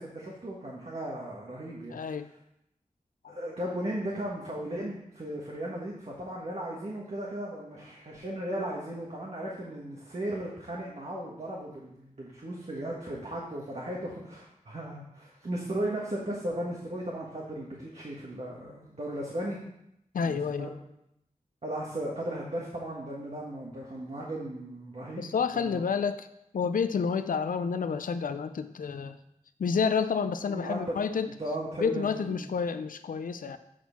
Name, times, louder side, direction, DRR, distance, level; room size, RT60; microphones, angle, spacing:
voice 1, 0.0-2.0 3.3-19.6 20.2-20.7 21.6-25.3 25.5-25.8 30.5-31.0 31.4-32.5, right 1 dB, 50° right, -3 dB, 1.4 m, -36 dB
voice 2, 1.9-2.3 3.2-3.4 20.1-20.7 25.2-26.3 26.5-29.2 29.6-31.3 31.8-33.6, left 6 dB, 75° left, 9 dB, 0.4 m, -29 dB
7.6 x 4.4 x 5.6 m, 0.81 s
wide cardioid pair, 75°, 14 cm